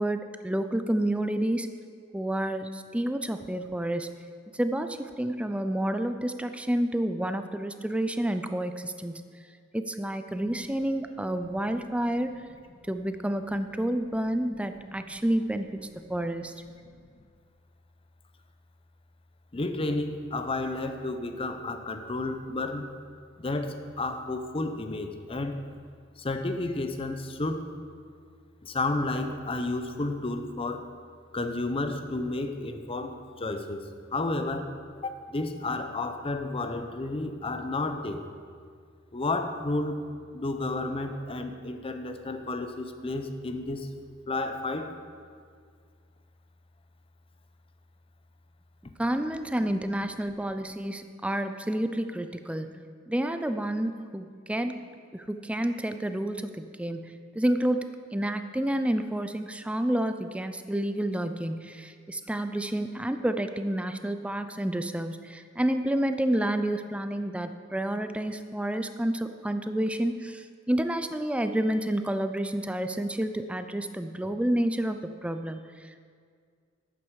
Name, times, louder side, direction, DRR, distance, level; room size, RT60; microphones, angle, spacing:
voice 1, 0.0-1.7 2.1-4.1 4.5-9.3 9.7-12.4 12.9-16.5 49.0-52.8 53.1-54.8 55.1-57.9 58.1-75.9, right 1 dB, 5° right, 8 dB, 0.4 m, -29 dB
voice 2, 19.5-23.0 23.4-25.6 26.2-27.7 28.6-30.9 31.3-34.8 35.0-38.3 39.1-40.0 40.3-43.9 44.3-45.0, left 2 dB, 30° left, 7 dB, 0.7 m, -31 dB
11.5 x 8.9 x 4.7 m, 2.1 s
head